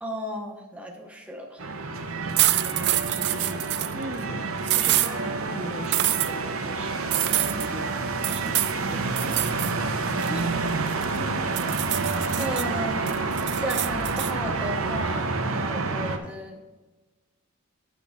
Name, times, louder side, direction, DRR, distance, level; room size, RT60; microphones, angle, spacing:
voice 1, 0.0-1.6 10.3-10.5 12.4-13.1 13.6-16.6, equal, 5° right, 0 dB, 0.9 m, -35 dB
sound 1, 1.6-16.2, right 3 dB, 75° right, 0.8 m, -28 dB
sound 2, 2.4-3.9 4.6-5.1 5.9-6.3 7.1-7.7 8.2-8.8 9.2-9.7 10.1-11.2 11.6-12.6 13.1-14.3, right 14 dB, 55° right, 0.4 m, -25 dB
voice 2, 2.8-3.5 3.9-4.4 4.7-9.4, right 2 dB, 35° right, -2 dB, 0.9 m, -39 dB
10.5 x 6.3 x 3.6 m, 1.2 s
head